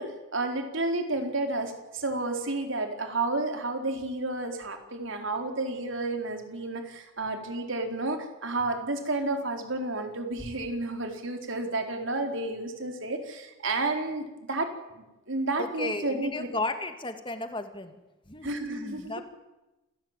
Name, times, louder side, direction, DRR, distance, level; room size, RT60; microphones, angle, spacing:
voice 1, 0.0-16.5 18.4-19.2, right 2 dB, 65° right, 4 dB, 4.4 m, -31 dB
voice 2, 15.6-18.0 18.3-19.2, left 2 dB, 25° left, 8 dB, 2.3 m, -34 dB
28.0 x 18.0 x 9.1 m, 1.0 s
head